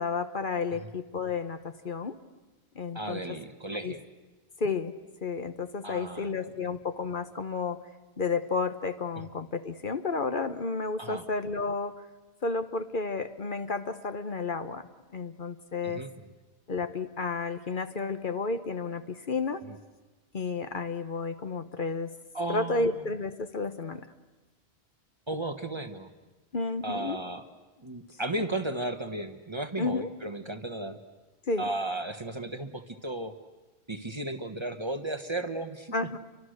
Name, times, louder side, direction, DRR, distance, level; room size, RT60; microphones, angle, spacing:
voice 1, 0.0-2.1 2.7-3.4 3.8-3.9 4.6-4.9 5.2-7.8 8.2-11.9 12.4-14.9 15.1-16.0 16.7-19.6 20.3-22.1 22.5-24.1 26.5-27.2 29.8-30.1 31.5-31.6 35.9-36.2, left 4 dB, 50° left, 9 dB, 1.2 m, -31 dB
voice 2, 2.9-4.0 5.8-6.4 11.0-11.3 15.8-16.1 19.7-19.8 22.3-22.9 25.3-26.1 26.8-27.4 27.8-31.0 31.6-33.3 33.9-35.9, right 2 dB, 25° right, 8 dB, 1.1 m, -34 dB
30.0 x 24.5 x 6.5 m, 1.2 s
omnidirectional pair, 1.1 m